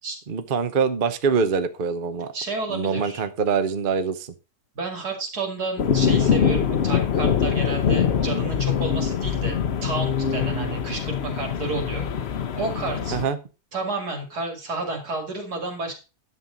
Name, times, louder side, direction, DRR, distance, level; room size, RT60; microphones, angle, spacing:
voice 1, 0.3-2.3 2.7-4.3 13.1-13.4, right 5 dB, 40° right, 10 dB, 0.9 m, -24 dB
voice 2, 2.3-3.2 4.7-9.6 9.8-12.1 12.6-13.2 13.7-15.9, right 3 dB, 85° right, 2 dB, 3.0 m, -31 dB
sound 1, 5.8-13.3, left 7 dB, 50° left, 0.9 m, -23 dB
10.5 x 7.4 x 3.9 m, 0.31 s
omnidirectional pair, 1.6 m